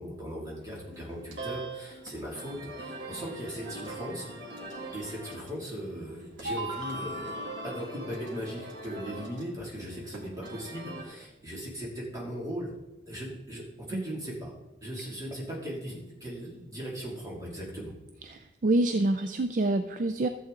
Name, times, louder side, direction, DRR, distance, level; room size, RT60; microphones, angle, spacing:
voice 1, 0.0-4.3 4.9-12.7 13.1-14.5 14.8-17.9, equal, 20° right, -4 dB, 2.5 m, -38 dB
sound 1, 0.6-11.0, right 2 dB, 85° right, 2.1 m, -41 dB
voice 2, 18.3-20.3, right 2 dB, 45° right, 9 dB, 0.4 m, -26 dB
14.0 x 7.7 x 3.8 m, 1.1 s
head